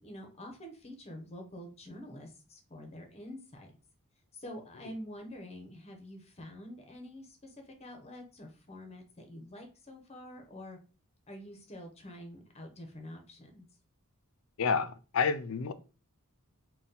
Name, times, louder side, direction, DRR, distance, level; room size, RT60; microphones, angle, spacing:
voice 1, 0.0-3.7 4.3-10.8 11.3-13.6, left 1 dB, 30° left, 4 dB, 0.8 m, -47 dB
voice 2, 14.6-15.7, left 5 dB, 65° left, 12 dB, 0.4 m, -29 dB
4.1 x 2.3 x 3.8 m, 0.34 s
head